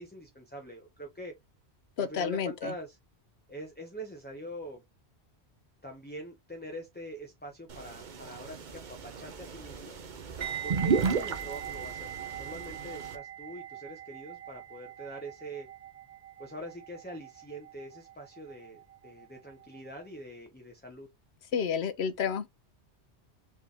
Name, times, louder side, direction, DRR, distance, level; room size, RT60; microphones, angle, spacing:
voice 1, 0.0-1.3 2.0-3.0 3.5-4.8 5.8-10.0 10.6-15.7 16.4-21.1, right 1 dB, 10° left, 0.9 m, -44 dB
voice 2, 2.0-2.7 21.5-22.5, left 7 dB, 70° left, 1.0 m, -30 dB
sound 1, 7.7-13.1, right 5 dB, 50° right, 0.8 m, -34 dB
sound 2, 10.4-19.4 19.6-19.9, right 11 dB, 75° right, 1.4 m, -42 dB
4.5 x 3.3 x 3.4 m
omnidirectional pair, 1.1 m